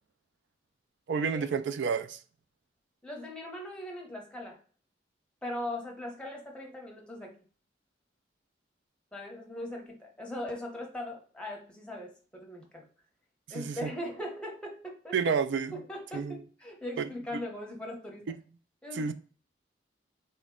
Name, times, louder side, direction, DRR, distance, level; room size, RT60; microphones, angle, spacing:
voice 1, 1.1-2.2 13.5-13.9 15.1-15.7 16.1-16.4 17.0-17.1 17.3-17.4 18.9-19.1, right 6 dB, 85° right, 0.3 m, -30 dB
voice 2, 3.0-4.6 5.4-7.4 9.1-12.9 13.5-15.2 15.7-18.3 18.8-19.1, left 1 dB, 5° left, 0.8 m, -40 dB
4.2 x 2.1 x 3.6 m
head